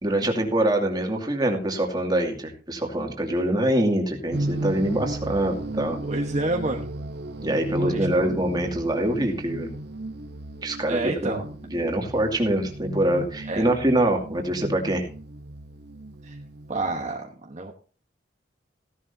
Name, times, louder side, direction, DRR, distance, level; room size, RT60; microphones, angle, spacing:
voice 1, 0.0-6.0 7.4-9.7 10.6-11.4 11.7-15.1, right 1 dB, 25° right, 2 dB, 2.4 m, -24 dB
sound 1, 4.3-17.1, right 1 dB, 65° right, 0.9 m, -35 dB
voice 2, 6.0-6.9 7.7-8.3 10.9-11.4 13.5-13.7 16.2-16.3 16.7-17.7, right 2 dB, 40° right, 1 dB, 1.2 m, -29 dB
16.0 x 11.0 x 2.8 m, 0.39 s
head